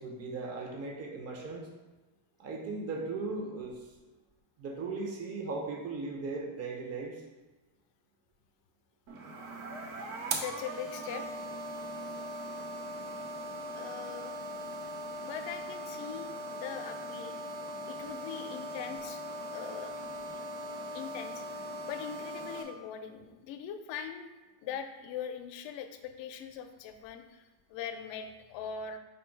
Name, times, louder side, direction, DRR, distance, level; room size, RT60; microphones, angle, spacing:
voice 1, 0.0-1.7 2.4-3.8 4.6-7.2, right 3 dB, 30° right, 0 dB, 0.7 m, -37 dB
sound 1, 9.1-22.6, right 1 dB, 85° right, 0.9 m, -40 dB
voice 2, 10.3-11.3 13.7-14.4 15.2-17.4 17.9-19.2 19.5-19.9 20.9-24.3 24.6-29.0, left 8 dB, 60° left, 7 dB, 0.6 m, -41 dB
5.0 x 2.3 x 4.5 m, 1.2 s
cardioid pair, 125°, 49 cm